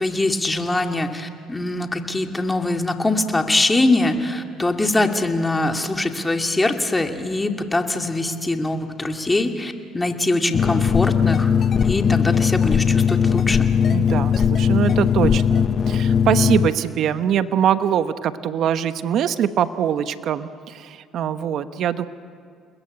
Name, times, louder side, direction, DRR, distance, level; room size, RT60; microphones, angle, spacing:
voice 1, 0.0-11.5 11.8-13.7, left 2 dB, 15° left, 4 dB, 2.5 m, -22 dB
sound 1, 10.5-16.7, left 7 dB, 45° left, 1.0 m, -19 dB
voice 2, 13.9-22.1, right 9 dB, 65° right, 11 dB, 1.1 m, -23 dB
29.0 x 20.5 x 8.8 m, 2.2 s
supercardioid pair, 75°, 0 cm